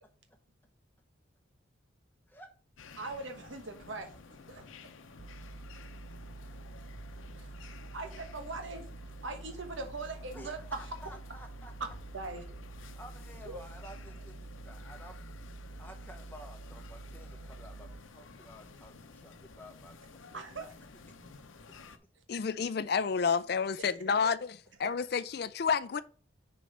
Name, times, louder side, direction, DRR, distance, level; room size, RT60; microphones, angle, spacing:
sound 1, 2.8-22.0, left 3 dB, 85° left, 0.8 m, -52 dB
voice 1, 3.0-4.6 7.4-7.7 7.9-10.8 12.1-12.5 13.4-13.6 20.3-20.7 22.1-22.2 23.8-24.3, right 3 dB, 75° right, 1.2 m, -41 dB
sound 2, 5.2-18.0, right 3 dB, 40° right, 0.3 m, -48 dB
voice 2, 5.4-5.9 6.1-6.2 10.3-11.7 12.9-15.2 15.8-20.0 20.3-20.4 21.1-21.5, equal, 10° left, 1.0 m, -52 dB
voice 3, 22.3-26.0, left 6 dB, 55° left, 0.4 m, -30 dB
6.4 x 4.4 x 5.3 m
head